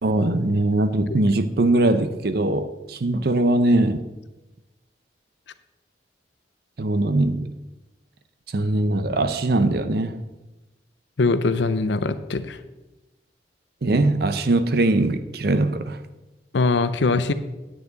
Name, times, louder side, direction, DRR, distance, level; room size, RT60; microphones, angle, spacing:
voice 1, 0.0-4.0 6.8-7.5 8.5-10.2 13.8-16.0, right 2 dB, 55° right, 11 dB, 0.6 m, -21 dB
voice 2, 11.2-12.6 16.5-17.3, left 3 dB, 75° left, 12 dB, 0.6 m, -22 dB
9.5 x 9.1 x 4.0 m, 1.1 s
head